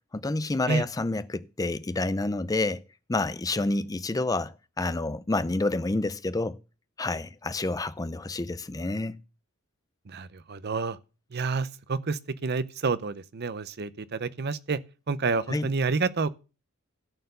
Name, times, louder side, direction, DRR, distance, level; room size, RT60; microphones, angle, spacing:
voice 1, 0.1-2.8 3.1-6.6 7.0-9.2 15.5-15.7, left 2 dB, 15° left, 0.4 m, -29 dB
voice 2, 10.1-11.0 11.3-14.8 15.1-16.3, right 4 dB, 50° right, 0.6 m, -29 dB
13.0 x 4.5 x 6.7 m
head